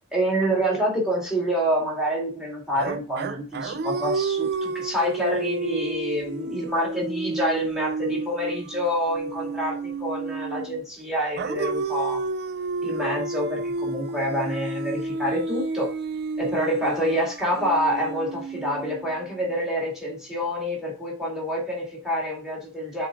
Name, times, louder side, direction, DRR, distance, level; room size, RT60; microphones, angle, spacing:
voice 1, 0.1-12.2 12.8-15.9 16.4-23.1, equal, 5° right, -2 dB, 2.2 m, -27 dB
sound 1, 2.8-10.8 11.4-19.4, right 3 dB, 50° right, 0.4 m, -31 dB
7.8 x 3.9 x 3.7 m, 0.37 s
head